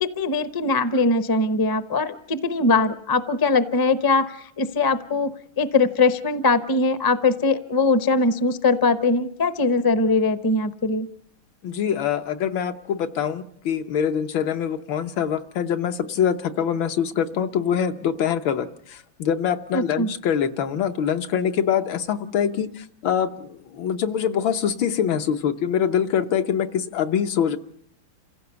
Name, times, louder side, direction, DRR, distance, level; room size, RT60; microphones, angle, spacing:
voice 1, 0.0-11.1 19.7-20.1, left 3 dB, 30° left, 12 dB, 0.4 m, -21 dB
voice 2, 11.6-27.6, left 8 dB, 80° left, 7 dB, 1.8 m, -24 dB
28.5 x 16.0 x 6.9 m, 0.70 s
omnidirectional pair, 2.1 m